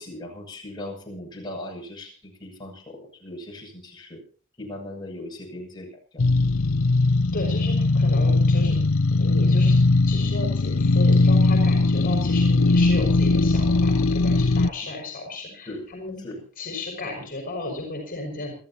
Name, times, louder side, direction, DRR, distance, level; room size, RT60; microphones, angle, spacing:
voice 1, 0.0-4.2 4.6-5.9 6.1-6.2 15.7-15.9 16.2-16.4, left 1 dB, 20° left, -1 dB, 7.8 m, -38 dB
sound 1, 6.2-14.7, left 3 dB, 80° left, 0.7 m, -19 dB
voice 2, 7.3-8.8 9.2-9.8 10.1-16.2 16.6-18.5, left 2 dB, 45° left, 2 dB, 6.1 m, -34 dB
28.0 x 15.0 x 3.0 m, 0.41 s
head